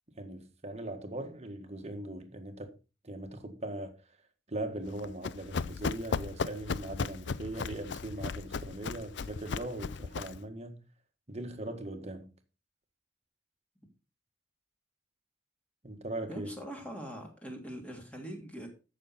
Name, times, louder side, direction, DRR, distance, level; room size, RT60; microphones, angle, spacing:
voice 1, 0.1-2.7 3.0-3.9 4.5-10.8 11.3-12.3 15.8-16.6, right 1 dB, 35° right, 1.6 m, -40 dB
Run, 4.9-10.4, left 5 dB, 65° left, 0.5 m, -36 dB
voice 2, 16.3-18.7, equal, 5° left, 3.0 m, -42 dB
14.0 x 6.5 x 4.3 m
head